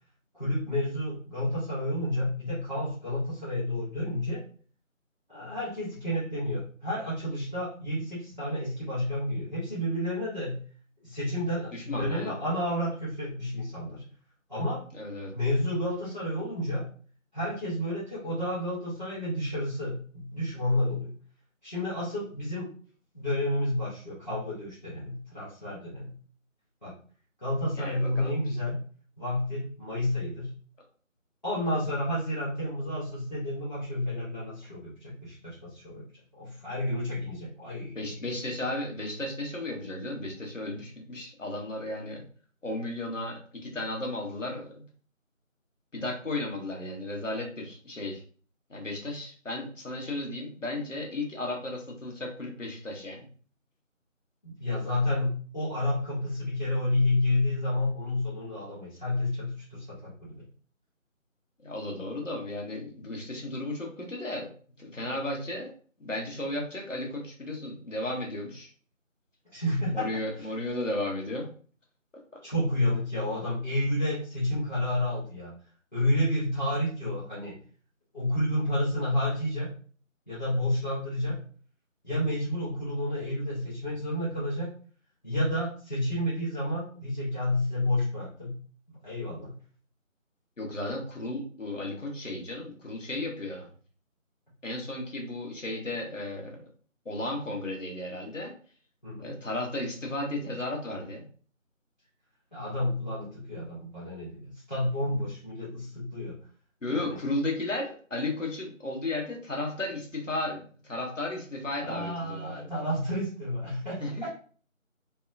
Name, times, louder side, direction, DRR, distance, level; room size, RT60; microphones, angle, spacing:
voice 1, 0.3-4.4 5.3-10.6 11.0-14.0 14.5-14.8 15.3-16.8 17.3-21.1 21.6-22.7 23.1-26.1 26.8-26.9 27.4-28.8 29.2-30.5 31.4-36.0 36.3-38.0 54.4-60.1 69.5-70.1 70.4-70.5 72.4-75.5 75.9-77.6 78.1-79.7 80.3-81.4 82.0-84.7 85.2-88.5 88.9-89.5 99.0-99.3 102.5-106.4 106.9-107.2 111.8-114.3, left 1 dB, 35° left, -10 dB, 1.0 m, -30 dB
voice 2, 11.7-12.4 14.9-15.3 27.7-28.3 37.9-42.2 42.6-44.8 45.9-48.2 48.7-53.3 61.6-64.5 64.8-65.7 66.0-68.7 69.9-71.5 72.3-72.4 90.6-93.7 94.6-96.6 97.0-98.5 99.2-101.3 106.8-112.7 114.0-114.3, left 2 dB, 65° left, -1 dB, 1.0 m, -34 dB
2.7 x 2.1 x 2.5 m, 0.43 s
figure-of-eight pair, 175°, 40 cm